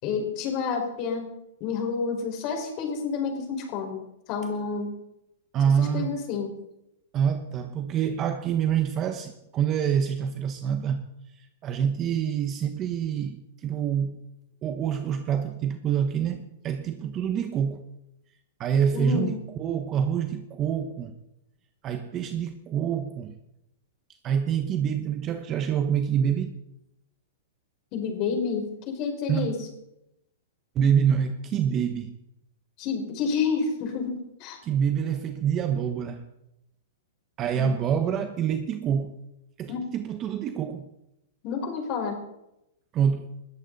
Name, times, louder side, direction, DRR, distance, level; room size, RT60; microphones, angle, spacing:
voice 1, 0.0-1.3 1.6-4.0 4.3-4.9 5.8-6.5 18.9-19.3 27.9-29.7 32.8-34.6 37.5-37.7 39.7-39.9 41.4-42.2, left 5 dB, 35° left, 5.2 m, -29 dB
voice 2, 5.5-6.2 7.1-11.1 11.4-14.2 14.6-17.9 18.6-21.1 21.8-23.3 24.2-26.5 29.3-29.6 30.7-32.2 34.6-36.3 37.4-39.2 39.6-40.8 42.9-43.3, right 8 dB, 25° right, 1.1 m, -26 dB
20.5 x 14.0 x 4.2 m
hypercardioid pair, 145°, 0 cm